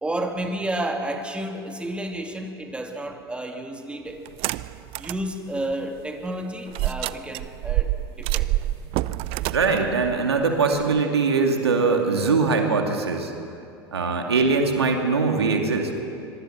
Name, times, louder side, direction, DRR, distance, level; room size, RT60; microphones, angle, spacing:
voice 1, 0.0-4.2 5.0-7.9 8.2-8.5, right 1 dB, 10° right, 3 dB, 2.5 m, -31 dB
sound 1, 4.3-5.3 5.7-5.8 6.7-11.0, right 16 dB, 45° right, 0.6 m, -27 dB
voice 2, 9.4-13.3 13.9-16.0, right 4 dB, 85° right, 3 dB, 2.4 m, -22 dB
25.5 x 23.5 x 6.0 m, 2.5 s
figure-of-eight pair, 85°, 13 cm